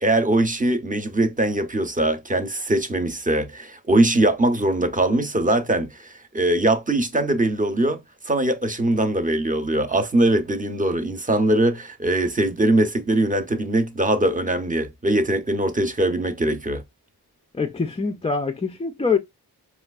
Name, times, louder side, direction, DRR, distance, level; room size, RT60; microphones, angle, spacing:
voice 1, 0.0-8.0 8.2-16.8, right 1 dB, 20° right, 0.6 m, -21 dB
voice 2, 17.5-19.2, left 5 dB, 15° left, 0.3 m, -24 dB
4.3 x 2.4 x 2.3 m
cardioid pair, 55°, 39 cm